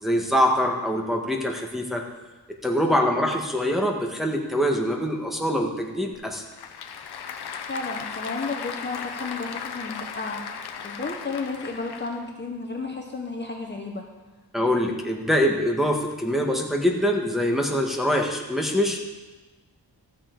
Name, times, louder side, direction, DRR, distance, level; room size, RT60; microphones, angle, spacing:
voice 1, 0.0-2.0 2.6-6.4 14.5-19.0, equal, ahead, 0 dB, 1.6 m, -24 dB
Applause / Crowd, 6.1-12.3, left 7 dB, 85° left, 0.9 m, -36 dB
voice 2, 7.7-10.4 10.8-14.0, left 3 dB, 30° left, 1 dB, 1.3 m, -32 dB
14.5 x 7.0 x 4.7 m, 1.2 s
cardioid pair, 80°, 38 cm